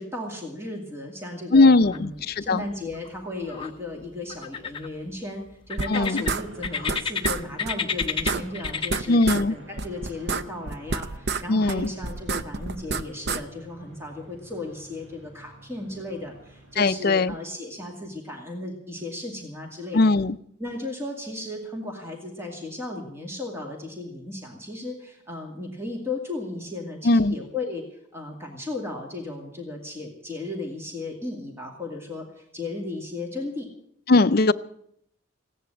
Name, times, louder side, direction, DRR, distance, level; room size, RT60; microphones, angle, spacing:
voice 1, 0.0-9.2 9.5-20.0 20.6-27.8 28.1-33.7, left 2 dB, 10° right, 1 dB, 2.3 m, -35 dB
voice 2, 1.5-2.6 5.9-6.2 9.1-9.5 11.5-11.9 16.8-17.3 19.9-20.4 27.0-27.3 34.1-34.5, left 3 dB, 50° left, 11 dB, 0.5 m, -19 dB
sound 1, 1.9-2.5 2.7-3.7 4.3-5.2 5.7-7.3 7.6-9.3, left 6 dB, 25° left, 0.9 m, -30 dB
sound 2, 5.8-7.0 7.2-7.4 7.7-7.8 8.0-9.4 9.8-11.4 11.7-13.4, right 4 dB, 50° right, 0.6 m, -28 dB
sound 3, 6.2-17.0, equal, 75° right, 3.1 m, -49 dB
16.5 x 10.0 x 7.9 m, 0.69 s
head